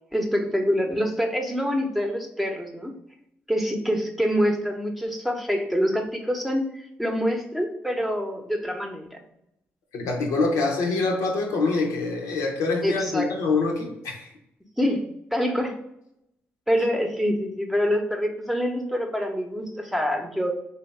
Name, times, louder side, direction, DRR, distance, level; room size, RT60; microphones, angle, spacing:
voice 1, 0.1-2.9 3.5-6.6 7.0-9.2 12.8-13.3 14.8-15.7 16.7-20.5, equal, ahead, 2 dB, 0.8 m, -25 dB
voice 2, 9.9-14.3, left 3 dB, 80° left, 0 dB, 0.8 m, -25 dB
3.3 x 2.8 x 3.2 m, 0.81 s
supercardioid pair, 55°, 5 cm